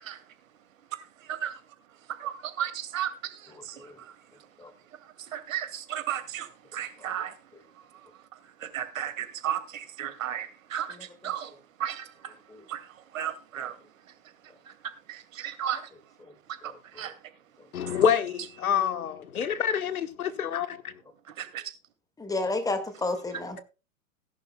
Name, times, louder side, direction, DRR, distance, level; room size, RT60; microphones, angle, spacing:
voice 1, 2.2-3.1 3.7-3.8 5.3-6.5 6.7-7.3 8.7-11.0 11.2-11.5 11.8-12.0 12.7-12.8 13.1-13.7 15.1-15.8 16.6-16.7 17.0-17.1 21.4-21.6, right 10 dB, 65° right, 2.4 m, -33 dB
voice 2, 3.5-4.0 4.6-4.7 7.0-7.1 7.5-7.6 10.9-11.3 12.5-12.6 16.2-16.3 16.6-17.1 22.2-23.6, left 2 dB, 10° left, 1.9 m, -33 dB
voice 3, 17.7-20.9, left 8 dB, 75° left, 1.4 m, -27 dB
18.5 x 11.0 x 2.2 m
hypercardioid pair, 115°, 43 cm